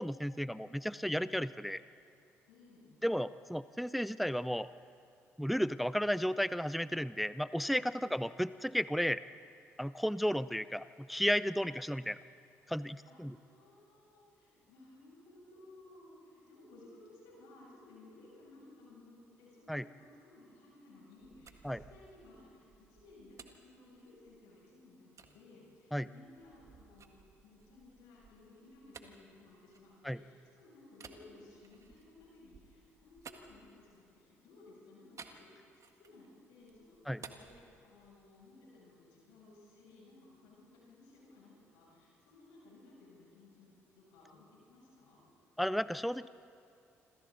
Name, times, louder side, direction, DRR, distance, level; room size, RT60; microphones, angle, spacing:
voice 1, 0.0-1.8 3.0-4.7 5.4-9.2 9.8-12.2 12.7-13.3 19.7-19.8 21.6-21.8 25.9-26.1 30.1-30.2 37.1-37.2 45.6-46.3, equal, ahead, 16 dB, 0.5 m, -33 dB
voice 2, 2.5-2.9 7.9-8.2 13.1-35.6 36.0-45.2, left 2 dB, 75° left, -5 dB, 7.7 m, -58 dB
sound 1, 21.2-24.5 25.2-25.4 25.9-30.3 30.9-34.2 35.2-36.3 36.6-38.4, right 5 dB, 45° right, 1.7 m, -57 dB
27.0 x 26.5 x 4.0 m, 2.5 s
hypercardioid pair, 45°, 7 cm